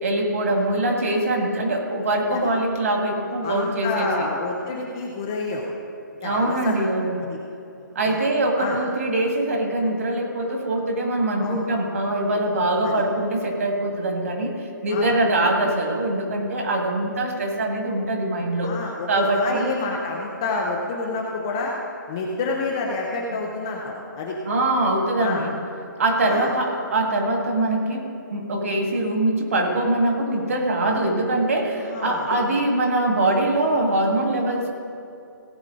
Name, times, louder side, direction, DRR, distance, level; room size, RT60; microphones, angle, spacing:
voice 1, 0.0-4.3 6.2-7.2 8.0-18.7 19.1-19.7 23.3-23.4 24.5-25.5 26.0-34.7, right 1 dB, 45° right, 2 dB, 1.9 m, -23 dB
voice 2, 3.4-5.6 6.2-6.7 7.3-7.4 8.1-8.2 8.6-8.8 11.4-11.6 12.8-12.9 14.9-15.1 18.6-21.7 22.1-24.4 25.2-25.4 26.2-26.5 31.8-32.4, left 3 dB, 10° left, -1 dB, 0.4 m, -28 dB
17.0 x 8.7 x 3.8 m, 2.6 s
hypercardioid pair, 175°, 11 cm